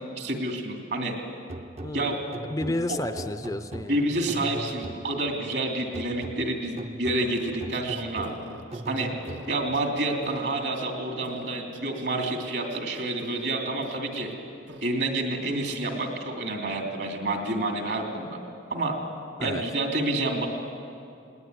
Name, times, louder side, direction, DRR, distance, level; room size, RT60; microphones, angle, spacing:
voice 1, 0.2-1.1 1.9-2.2 2.9-3.0 3.9-8.3 8.9-9.1 9.5-14.3 14.8-18.4 18.7-18.9 19.4-20.5, right 2 dB, 60° right, 2 dB, 3.0 m, -28 dB
sound 1, 1.5-5.4 5.9-9.8, right 2 dB, 35° right, 0.6 m, -40 dB
voice 2, 1.8-2.2 2.5-4.0 19.4-19.6, left 1 dB, 15° left, 10 dB, 0.5 m, -31 dB
sound 2, 7.2-10.9 11.2-13.5 13.8-14.3 14.7-14.9, right 1 dB, 75° right, 1.5 m, -46 dB
19.5 x 19.0 x 9.5 m, 2.5 s
head